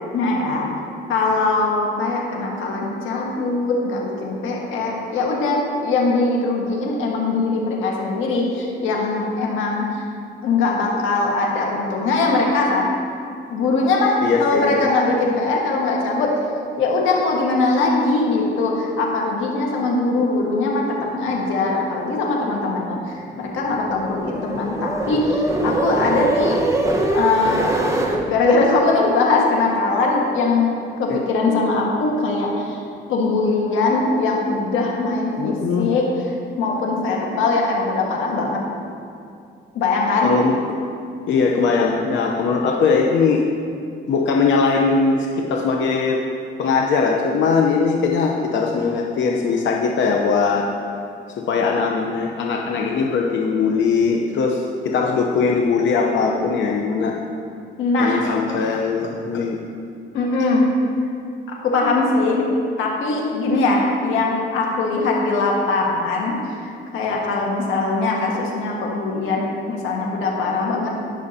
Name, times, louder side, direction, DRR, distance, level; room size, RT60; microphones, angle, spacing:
voice 1, 0.1-0.7 1.1-9.9 10.4-12.9 13.5-16.3 16.8-26.8 27.1-27.7 28.2-30.7 31.0-32.8 33.1-36.0 36.6-38.6 39.7-40.3 57.8-58.2 60.1-60.7 61.5-62.5 62.8-66.4 66.6-70.9, left 3 dB, 90° left, -1 dB, 1.6 m, -21 dB
voice 2, 14.2-14.8 35.4-35.9 40.2-40.6 41.3-43.4 44.1-46.2 46.6-50.6 51.5-57.1 58.0-59.6, left 5 dB, 70° left, 0 dB, 0.8 m, -20 dB
sound 1, 23.5-28.2, right 2 dB, 15° right, 1.2 m, -23 dB
18.0 x 6.4 x 2.8 m, 2.4 s
cardioid pair, 90°, 20 cm